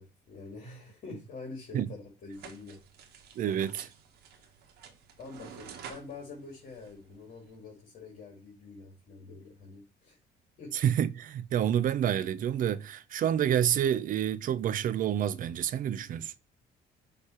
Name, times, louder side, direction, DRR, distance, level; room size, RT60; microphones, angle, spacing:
voice 1, 0.0-2.8 3.4-3.8 4.4-4.5 5.2-10.2 10.6-10.7, left 3 dB, 50° left, 2.3 m, -46 dB
sound 1, 2.3-7.6, right 7 dB, 75° right, 1.5 m, -50 dB
voice 2, 3.4-3.9 10.7-16.3, right 10 dB, 55° right, 0.6 m, -28 dB
6.6 x 3.3 x 5.6 m
cardioid pair, 110°, 17 cm